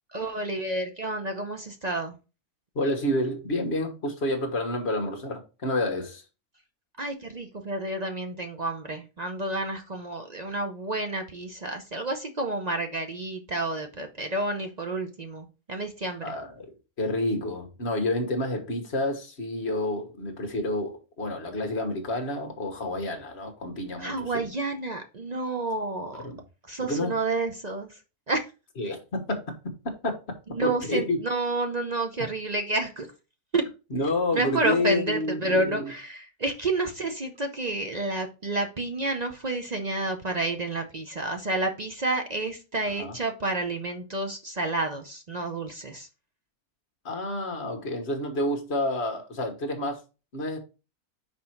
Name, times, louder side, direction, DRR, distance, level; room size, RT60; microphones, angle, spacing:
voice 1, 0.1-2.1 7.0-16.3 24.0-26.3 26.7-28.0 28.3-28.4 30.5-33.1 33.5-33.6 34.3-46.1, right 2 dB, 45° right, 0.6 m, -30 dB
voice 2, 2.7-6.2 16.2-16.7 17.0-24.5 26.1-26.4 26.8-27.2 28.8-29.4 29.8-30.2 30.6-31.2 33.9-35.9 43.0-43.2 47.0-50.0 50.3-50.6, left 1 dB, 45° left, 1.6 m, -29 dB
6.0 x 4.5 x 4.4 m
omnidirectional pair, 1.6 m